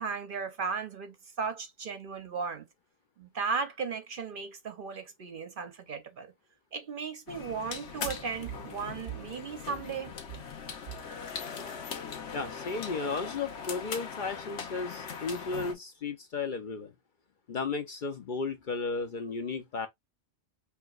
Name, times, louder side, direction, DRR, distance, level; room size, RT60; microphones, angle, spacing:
voice 1, 0.0-2.7 3.2-6.3 6.7-10.1, right 5 dB, 55° right, 0.7 m, -36 dB
sound 1, 7.3-15.7, left 6 dB, 75° left, 1.1 m, -40 dB
voice 2, 12.3-16.9 17.5-19.9, left 4 dB, 55° left, 0.7 m, -34 dB
5.7 x 2.8 x 2.3 m
omnidirectional pair, 1.2 m